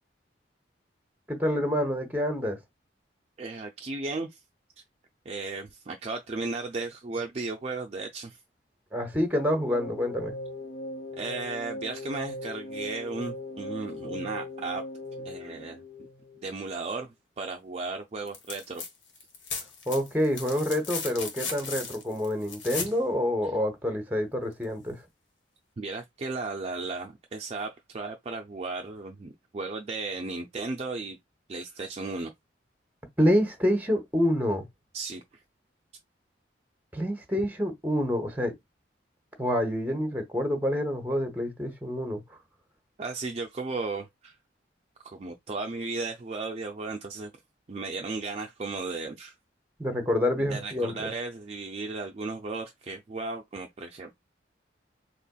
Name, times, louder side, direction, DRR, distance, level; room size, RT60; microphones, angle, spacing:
voice 1, 1.3-2.6 8.9-10.3 19.9-25.0 33.2-34.7 36.9-38.5 39.4-42.2 49.8-51.1, equal, 10° right, 0.9 m, -27 dB
voice 2, 3.4-4.4 5.3-8.4 11.2-14.8 15.2-16.1 16.4-18.8 25.8-31.2 31.5-32.3 34.9-35.2 43.0-44.3 45.0-47.3 47.7-49.3 50.4-54.1, right 3 dB, 35° right, 0.4 m, -35 dB
sound 1, 9.4-16.6, left 1 dB, 50° left, 0.5 m, -39 dB
sound 2, 18.3-18.9 19.2-23.0 24.6-24.7, left 5 dB, 85° left, 1.1 m, -36 dB
4.1 x 3.0 x 2.3 m
head